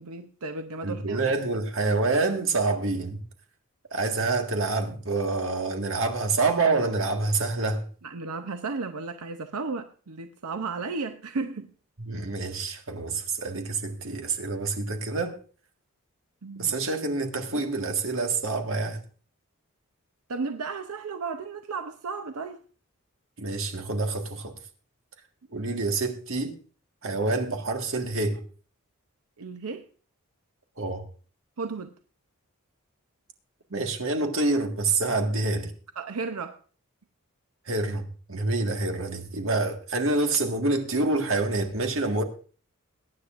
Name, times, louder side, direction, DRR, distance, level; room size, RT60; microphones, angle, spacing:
voice 1, 0.0-1.2 8.0-11.7 16.4-16.7 20.3-22.6 29.4-29.9 31.6-31.9 36.0-36.6, right 4 dB, 85° right, 0.7 m, -34 dB
voice 2, 0.8-3.2 3.9-7.9 12.0-15.4 16.6-19.0 23.4-24.5 25.5-26.6 27.0-28.4 30.8-31.0 33.7-35.7 37.7-38.0 38.3-42.2, right 3 dB, 65° right, 1.7 m, -27 dB
22.0 x 9.7 x 2.5 m
head